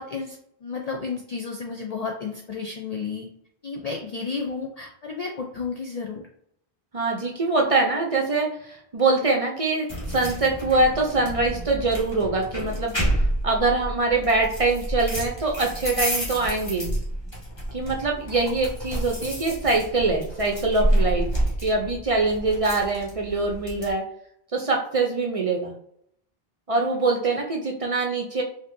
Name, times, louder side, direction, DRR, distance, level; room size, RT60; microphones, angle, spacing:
voice 1, 0.0-3.3 3.6-6.3 27.3-27.4, left 5 dB, 50° left, 1 dB, 0.5 m, -32 dB
voice 2, 6.9-12.9 13.4-17.0 17.7-21.3 21.6-24.0 24.5-25.7 26.7-28.4, right 3 dB, 45° right, 0 dB, 0.5 m, -24 dB
sound 1, 9.9-23.9, right 1 dB, 25° left, 1.2 m, -29 dB
4.3 x 2.7 x 2.6 m, 0.71 s
omnidirectional pair, 1.1 m